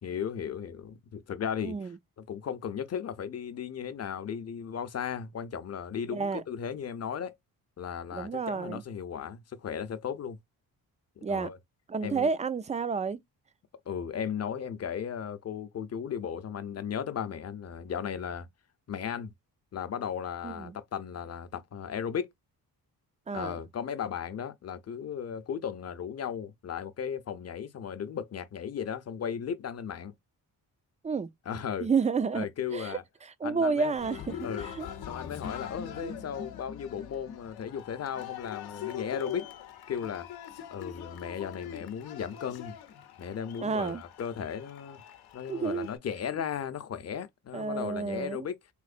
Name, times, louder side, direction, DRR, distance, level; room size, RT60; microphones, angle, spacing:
voice 1, 0.0-1.8 2.3-7.4 7.8-10.4 11.2-11.6 12.0-12.3 13.9-18.5 18.9-19.3 19.7-22.3 23.3-30.1 31.5-31.9 32.3-33.0 33.4-33.9 34.4-34.7 35.1-39.5 39.9-40.3 40.7-42.8 43.2-45.0 45.3-48.6, left 8 dB, 45° left, 0.7 m, -36 dB
voice 2, 1.6-2.0 6.1-6.4 8.1-8.8 11.2-11.5 11.9-13.2 20.4-20.8 23.3-23.6 31.0-31.3 31.8-32.5 32.7-34.9 36.0-36.1 43.6-44.0 45.5-45.9 46.3-46.4 47.5-48.5, right 5 dB, 20° right, 0.3 m, -30 dB
Cheering, 34.0-46.0, left 9 dB, 85° left, 0.7 m, -42 dB
3.5 x 3.1 x 2.5 m
cardioid pair, 100°, 37 cm